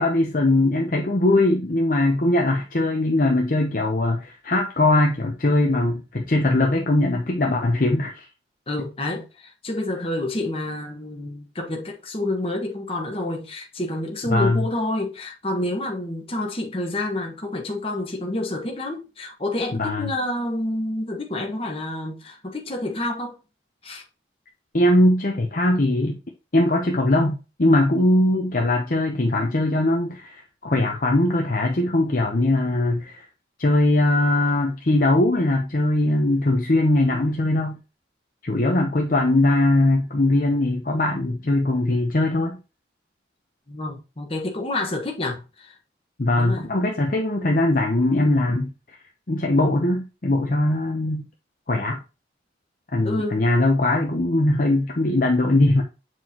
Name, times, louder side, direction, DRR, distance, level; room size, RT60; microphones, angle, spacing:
voice 1, 0.0-8.3 14.3-14.7 19.8-20.1 24.7-26.2 26.5-33.2 33.6-37.8 38.4-42.6 46.2-48.7 49.3-51.3 51.7-52.0 52.9-55.8, left 1 dB, 45° left, 0.8 m, -20 dB
voice 2, 8.7-23.3 23.8-24.0 38.5-38.7 43.7-45.8 46.4-46.7 53.0-53.4, left 1 dB, 30° left, 1.4 m, -28 dB
7.7 x 4.6 x 2.9 m
head